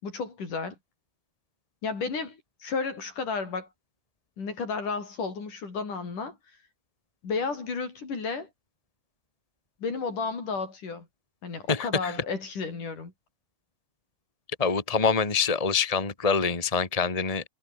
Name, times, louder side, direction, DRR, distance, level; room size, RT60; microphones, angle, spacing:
voice 1, 0.0-0.8 1.8-3.7 4.4-6.4 7.2-8.5 9.8-11.1 11.4-13.1, left 4 dB, 75° left, 7.1 m, -32 dB
voice 2, 11.7-12.2 14.6-17.4, left 5 dB, 10° left, 2.5 m, -25 dB
omnidirectional pair, 3.7 m